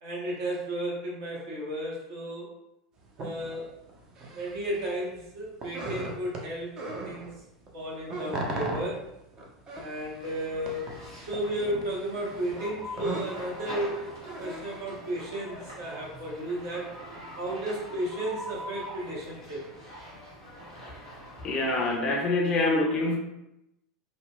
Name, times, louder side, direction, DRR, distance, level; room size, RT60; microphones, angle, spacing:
voice 1, 0.0-2.5 3.2-3.7 4.3-6.7 7.0-7.3 7.7-9.0 9.7-14.1 14.4-16.9 17.4-19.6, right 1 dB, 60° right, -5 dB, 0.9 m, -33 dB
sound 1, 3.1-4.9 5.2-7.3 7.7-14.8, right 2 dB, 30° right, 0.5 m, -38 dB
sound 2, 10.2-22.0, equal, 85° right, 1.0 m, -43 dB
voice 2, 21.4-23.2, left 2 dB, 35° left, 2 dB, 0.4 m, -26 dB
2.7 x 2.1 x 2.2 m, 0.87 s
figure-of-eight pair, 80°, 2 cm